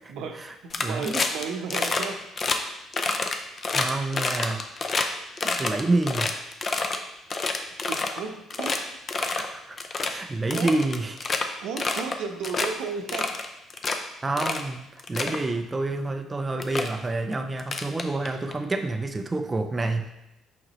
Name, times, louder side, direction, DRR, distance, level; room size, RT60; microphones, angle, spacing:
voice 1, 0.1-2.2 7.8-8.9 10.5-10.7 11.6-13.3, right 5 dB, 85° right, 4 dB, 0.8 m, -34 dB
sound 1, 0.7-1.4 1.7-2.1 2.4-2.6 2.9-5.1 5.4-7.0 7.3-8.2 8.5-8.8 9.1-9.5 9.8-10.1 10.5-11.4 11.8-12.2 12.4-12.7 13.1-14.0 14.4-14.6 15.0-15.4 16.2-16.3 16.6-16.9 17.6-18.5, left 3 dB, 30° left, 0.5 m, -27 dB
voice 2, 0.8-1.2 3.7-4.6 5.4-6.3 9.2-11.5 14.2-20.1, right 2 dB, 20° right, 5 dB, 0.4 m, -28 dB
6.5 x 5.1 x 3.1 m, 0.88 s
cardioid pair, 135°, 0 cm